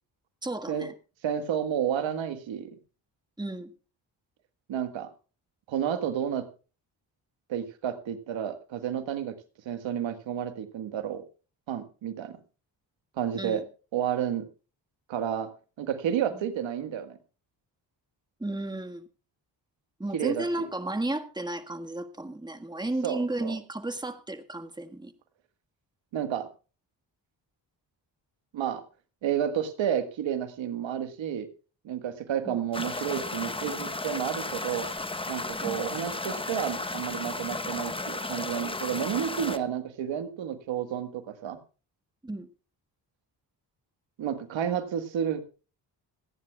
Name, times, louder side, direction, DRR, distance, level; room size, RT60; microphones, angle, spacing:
voice 1, 0.4-0.9 3.4-3.7 13.3-13.6 16.3-16.4 18.4-19.1 20.0-25.1 32.4-32.6 35.6-35.8 42.2-42.5, right 2 dB, 10° right, 7 dB, 1.5 m, -33 dB
voice 2, 1.2-2.7 4.7-5.1 5.7-6.5 7.5-9.4 9.6-11.2 11.7-12.3 13.2-13.6 13.9-14.5 15.1-15.5 15.8-17.2 20.1-20.7 23.0-23.6 26.1-26.5 28.5-28.8 29.2-31.5 31.8-34.9 35.3-41.6 44.2-45.4, right 9 dB, 85° right, 10 dB, 1.6 m, -31 dB
sound 1, 32.7-39.6, left 2 dB, 10° left, 0.9 m, -34 dB
26.5 x 9.9 x 2.3 m, 0.34 s
cardioid pair, 75°, 45 cm